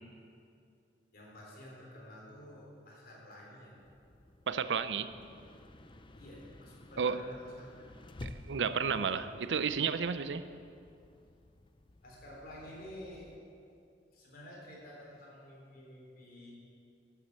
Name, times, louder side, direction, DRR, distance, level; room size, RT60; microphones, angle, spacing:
voice 1, 1.1-3.7 6.2-8.1 8.9-9.1 12.0-13.3 14.1-16.5, left 1 dB, 55° left, -3 dB, 3.5 m, -50 dB
sound 1, 3.8-13.4, left 1 dB, 30° left, 0.6 m, -53 dB
voice 2, 4.5-5.1 7.0-7.3 8.2-10.5, right 6 dB, 90° right, 12 dB, 0.5 m, -32 dB
12.0 x 7.5 x 7.4 m, 2.5 s
head